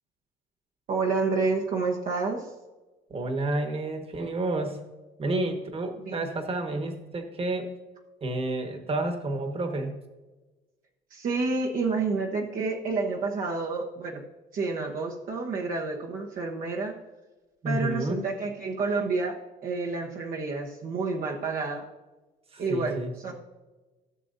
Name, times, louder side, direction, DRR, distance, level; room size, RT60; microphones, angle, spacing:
voice 1, 0.9-2.5 6.0-6.3 11.1-14.2 14.5-17.0 17.6-21.8 22.6-23.3, right 4 dB, 55° right, -1 dB, 1.1 m, -29 dB
voice 2, 3.1-4.8 5.2-7.7 8.2-9.9 17.6-18.2 22.5-23.3, right 2 dB, 35° right, 5 dB, 1.5 m, -30 dB
15.0 x 6.7 x 2.7 m, 1.2 s
cardioid pair, 110°, 17 cm